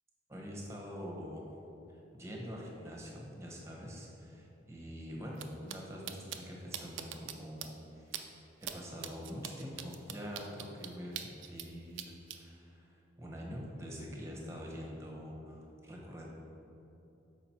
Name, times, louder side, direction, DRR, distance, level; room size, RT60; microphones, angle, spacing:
voice 1, 0.3-1.4 1.9-8.1 8.6-16.3, equal, 15° right, -2 dB, 1.0 m, -45 dB
sound 1, 5.3-5.4 5.7-5.8 6.1-6.4 6.7-7.3 7.6-7.7 8.1-8.2 8.6-8.7 9.0-11.7 12.0-12.4, right 10 dB, 70° right, 0.5 m, -41 dB
6.8 x 4.9 x 4.4 m, 2.9 s
head